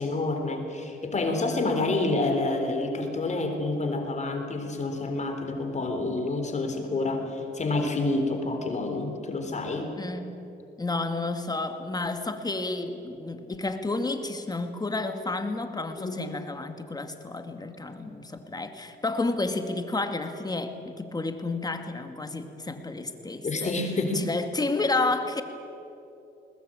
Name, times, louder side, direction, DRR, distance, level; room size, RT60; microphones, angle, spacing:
voice 1, 0.0-10.0 16.0-16.2 23.4-24.2, left 2 dB, 35° left, 4 dB, 3.7 m, -28 dB
voice 2, 10.0-10.4 10.8-23.8 24.1-25.4, left 2 dB, 20° left, 7 dB, 2.2 m, -31 dB
20.5 x 20.5 x 9.0 m, 2.8 s
cardioid pair, 90°, 20 cm